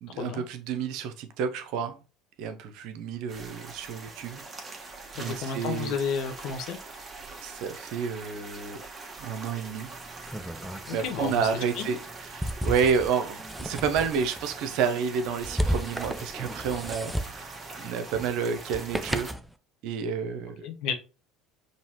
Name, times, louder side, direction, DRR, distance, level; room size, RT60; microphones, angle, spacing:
voice 1, 0.0-2.0 2.4-4.4 5.1-5.9 7.4-8.8 9.2-9.9 10.9-12.0 12.3-17.5 17.8-19.3 19.8-20.6, right 6 dB, 60° right, 8 dB, 0.7 m, -30 dB
sound 1, 3.3-19.3, right 3 dB, 25° right, 1.4 m, -43 dB
voice 2, 5.2-6.8 10.9-11.9 20.6-20.9, left 6 dB, 60° left, 6 dB, 0.9 m, -32 dB
sound 2, 9.9-19.5, equal, 5° right, 0.5 m, -35 dB
5.4 x 2.9 x 2.9 m, 0.34 s
hypercardioid pair, 70°, 0 cm